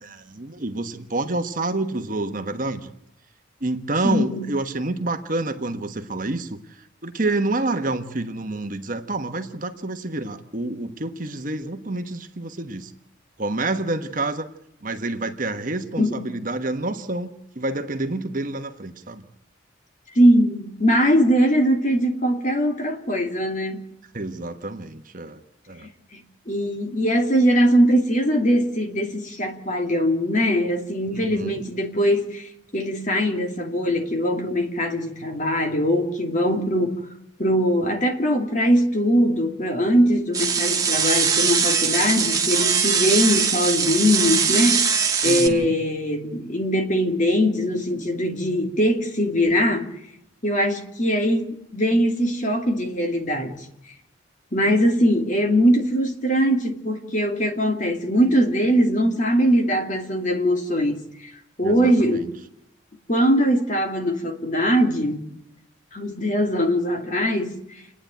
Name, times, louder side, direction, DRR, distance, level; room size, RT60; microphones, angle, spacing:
voice 1, 0.0-2.9 3.6-6.6 7.0-12.9 13.4-14.4 14.8-19.2 24.1-25.4 25.7-25.9 31.1-31.6 45.2-45.7 61.6-62.3, right 2 dB, 40° right, 1.2 m, -28 dB
voice 2, 4.0-4.4 16.0-16.2 20.1-23.8 25.8-25.9 26.5-37.0 37.4-49.9 50.4-53.7 54.5-61.3 61.6-62.3 63.1-65.2 65.9-67.6, equal, 40° left, 2.6 m, -21 dB
sound 1, 40.3-45.5, right 6 dB, 20° right, 1.4 m, -21 dB
29.0 x 10.0 x 9.0 m
head